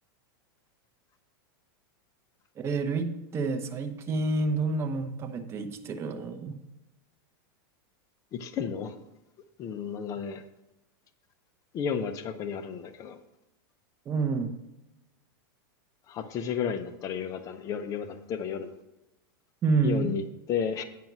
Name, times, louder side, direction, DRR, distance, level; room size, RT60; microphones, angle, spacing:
voice 1, 2.6-6.6 14.1-14.5 19.6-20.1, right 3 dB, 20° right, 6 dB, 0.8 m, -28 dB
voice 2, 8.3-9.0 9.6-10.4 11.7-13.2 16.1-18.7 19.8-20.8, left 7 dB, 25° left, 9 dB, 0.6 m, -32 dB
9.4 x 5.3 x 6.0 m, 0.94 s
supercardioid pair, 155°, 13 cm